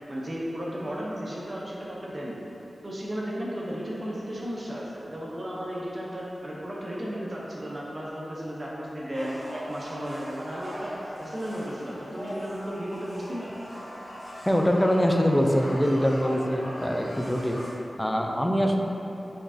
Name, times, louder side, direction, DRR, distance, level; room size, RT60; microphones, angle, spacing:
voice 1, 0.1-2.4 2.8-10.9 11.2-13.5, equal, 40° right, -5 dB, 0.7 m, -34 dB
sound 1, 9.1-17.7, equal, 45° left, 1.5 m, -40 dB
voice 2, 14.5-17.6 18.0-18.8, equal, 5° left, 2 dB, 0.4 m, -23 dB
5.9 x 3.2 x 2.7 m, 3.0 s
wide cardioid pair, 60°, 0 cm